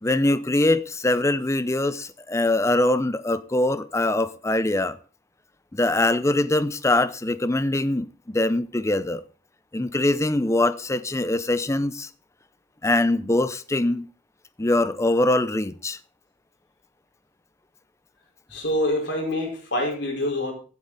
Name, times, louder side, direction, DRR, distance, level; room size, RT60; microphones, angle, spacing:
voice 1, 0.0-5.0 5.7-9.2 9.7-12.1 12.8-14.1 14.6-16.0, left 2 dB, 15° left, 0.6 m, -23 dB
voice 2, 18.5-20.5, left 1 dB, 65° left, 4.8 m, -26 dB
15.5 x 8.6 x 4.1 m
head